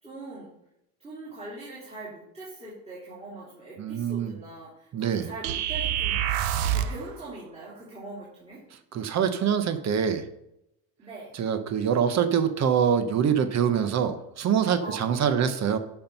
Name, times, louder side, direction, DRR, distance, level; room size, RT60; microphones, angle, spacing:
voice 1, 0.0-0.5 1.0-8.6 11.0-11.3 14.8-15.0 15.3-15.5, right 2 dB, 15° right, -7 dB, 2.9 m, -42 dB
voice 2, 3.8-4.3 4.9-5.3 8.9-10.3 11.3-15.8, right 7 dB, 45° right, 10 dB, 0.9 m, -24 dB
sound 1, 5.4-7.0, right 10 dB, 85° right, 0.9 m, -26 dB
11.0 x 4.5 x 5.4 m, 0.81 s
cardioid pair, 145°, 39 cm